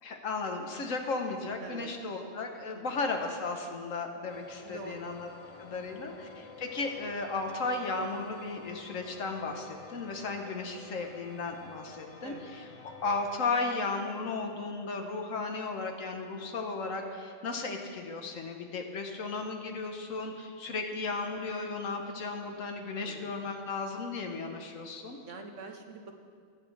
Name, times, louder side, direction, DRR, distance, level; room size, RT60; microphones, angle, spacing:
voice 1, 0.0-5.3 5.6-12.7 13.0-25.2, left 3 dB, 80° left, 3 dB, 1.5 m, -35 dB
voice 2, 1.6-1.9 2.7-3.0 4.6-5.1 5.7-6.1 12.2-12.4 23.0-23.4 25.3-26.2, right 4 dB, 70° right, 4 dB, 1.3 m, -46 dB
sound 1, 4.3-13.4, left 4 dB, 60° left, 0.3 m, -50 dB
20.5 x 8.6 x 3.4 m, 2.2 s
omnidirectional pair, 1.4 m